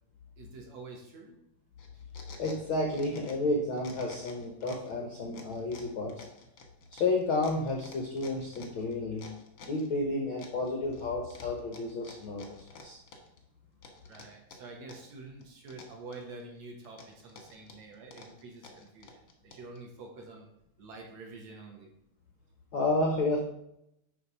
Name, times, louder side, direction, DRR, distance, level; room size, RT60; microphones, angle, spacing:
voice 1, 0.4-1.4 14.0-20.5 20.8-21.9, right 3 dB, 60° right, 0 dB, 2.1 m, -47 dB
sound 1, 1.8-3.5 3.8-4.9 5.3-9.9 10.4-11.0 11.3-13.4 13.8-15.1 15.4-16.4 16.8-19.8, left 4 dB, 60° left, 1.2 m, -51 dB
voice 2, 2.4-6.2 6.9-9.3 9.6-13.0 22.7-23.4, left 2 dB, 85° left, 1 dB, 1.1 m, -31 dB
9.7 x 3.5 x 5.5 m, 0.79 s
omnidirectional pair, 3.9 m